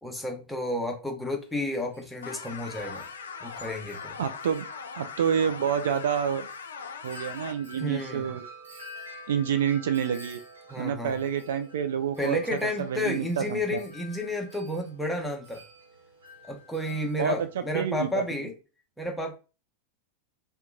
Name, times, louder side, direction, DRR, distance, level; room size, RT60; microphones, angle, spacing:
voice 1, 0.0-3.0 3.4-4.2 7.8-8.4 10.7-11.2 12.2-15.6 16.4-18.5 19.0-19.4, left 1 dB, 5° left, 0.8 m, -31 dB
Wind chime, 1.4-18.3, equal, 75° right, 1.0 m, -49 dB
sound 1, 2.2-7.5, left 6 dB, 70° left, 0.4 m, -40 dB
voice 2, 4.2-4.7 5.0-6.5 7.0-8.4 9.3-10.4 10.8-13.8 17.2-17.4 17.7-18.2, right 8 dB, 60° right, 0.4 m, -28 dB
2.8 x 2.2 x 3.6 m
figure-of-eight pair, 90°, 0 cm